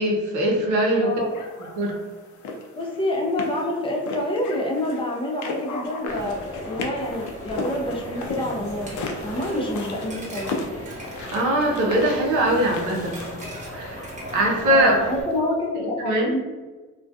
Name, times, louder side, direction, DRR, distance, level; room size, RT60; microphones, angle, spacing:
voice 1, 0.0-1.1 1.8-1.9 11.3-13.3 13.7-14.1 14.3-14.9 15.7-16.3, right 1 dB, 80° right, -1 dB, 0.7 m, -21 dB
voice 2, 1.0-1.3 2.8-10.5 14.7-16.5, left 1 dB, 20° left, -1 dB, 0.5 m, -27 dB
sound 1, 1.3-15.4, left 3 dB, 75° left, 0.5 m, -36 dB
Coin (dropping), 6.1-15.2, equal, 25° right, 0.9 m, -37 dB
2.3 x 2.2 x 2.6 m, 1.3 s
cardioid pair, 90°, 30 cm